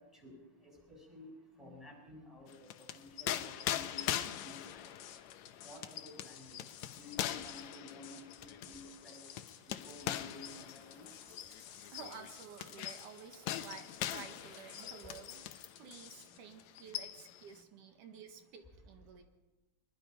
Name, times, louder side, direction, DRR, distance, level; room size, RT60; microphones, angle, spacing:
voice 1, 0.6-1.3 1.6-2.5 2.9-4.2 4.4-4.9 5.6-6.6 7.0-9.2 9.7-11.1, left 2 dB, ahead, -1 dB, 7.3 m, -52 dB
sound 1, 2.5-15.8 16.1-16.3 16.6-17.4, left 12 dB, 70° left, 1.9 m, -41 dB
sound 2, 4.0-16.4, left 10 dB, 90° left, 2.8 m, -55 dB
sound 3, 9.9-15.2, right 1 dB, 50° right, 4.6 m, -61 dB
voice 2, 11.9-19.2, right 6 dB, 80° right, 6 dB, 3.3 m, -52 dB
23.5 x 20.5 x 5.5 m, 1.1 s
omnidirectional pair, 3.6 m